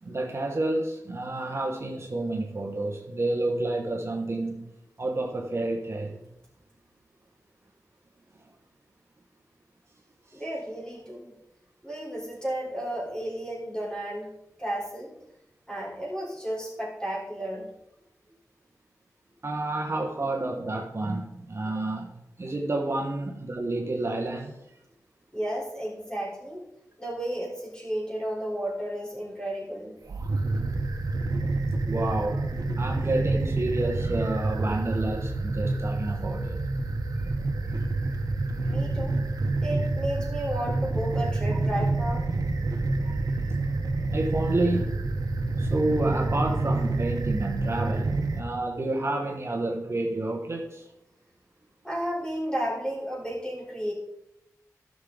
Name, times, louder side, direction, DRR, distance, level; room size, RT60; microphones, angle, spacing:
voice 1, 0.0-4.7 5.0-6.2 10.3-10.4 19.4-22.1 22.4-24.6 31.8-36.6 37.2-37.3 37.6-38.2 38.6-38.8 43.0-43.2 44.1-45.1 45.6-50.8, right 2 dB, 45° right, 1.3 m, -30 dB
voice 2, 10.3-11.3 11.8-14.3 14.6-15.2 15.7-17.7 25.3-26.6 27.0-29.9 38.7-39.2 39.6-42.3 51.8-53.9, right 1 dB, 10° left, 3.8 m, -33 dB
sound 1, 30.0-48.4, right 2 dB, 85° right, 1.1 m, -28 dB
14.5 x 6.4 x 3.9 m
wide cardioid pair, 100°, 6 cm